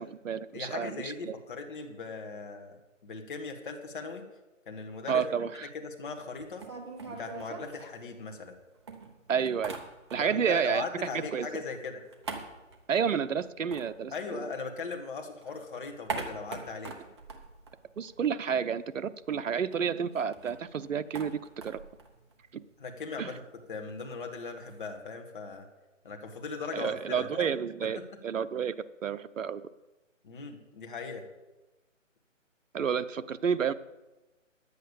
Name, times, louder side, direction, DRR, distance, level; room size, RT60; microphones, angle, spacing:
voice 1, 0.0-1.3 5.1-5.6 9.3-9.8 10.1-10.8 11.1-11.5 12.9-14.5 18.0-21.8 22.5-22.6 23.2-23.3 26.7-29.6 32.7-33.7, right 7 dB, 75° right, 12 dB, 0.8 m, -30 dB
voice 2, 0.5-2.7 3.0-4.3 4.7-5.2 5.7-6.6 7.1-8.6 10.2-12.0 14.1-16.9 22.8-23.4 23.7-25.7 26.0-27.5 27.8-28.0 30.2-31.3, left 4 dB, 40° left, 4 dB, 1.7 m, -39 dB
sound 1, 6.4-8.5 8.9-10.5 10.8-14.9 15.2-18.5 18.8-18.9 19.2-25.0, right 4 dB, 20° right, 0.8 m, -44 dB
10.5 x 8.3 x 7.0 m, 1.1 s
hypercardioid pair, 160°, 39 cm